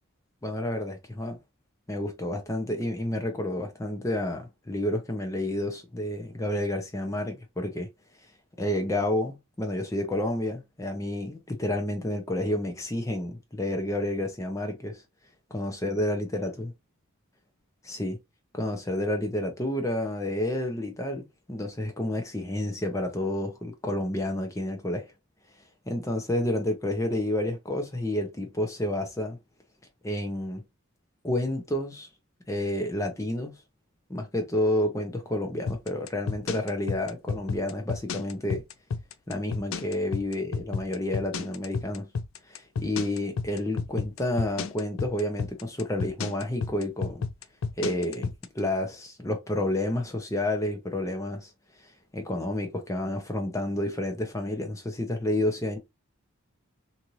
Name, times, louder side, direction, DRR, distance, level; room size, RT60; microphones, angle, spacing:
voice 1, 0.4-1.4 1.9-7.9 8.6-15.0 15.5-16.7 17.8-18.2 18.5-25.1 25.9-29.4 30.0-30.6 31.2-32.1 32.5-33.6 34.1-38.6 39.3-42.1 42.5-47.3 47.8-51.5 52.1-55.8, left 1 dB, 15° left, 0.6 m, -30 dB
sound 1, 35.7-48.5, left 5 dB, 65° left, 0.4 m, -31 dB
2.7 x 2.5 x 3.0 m
head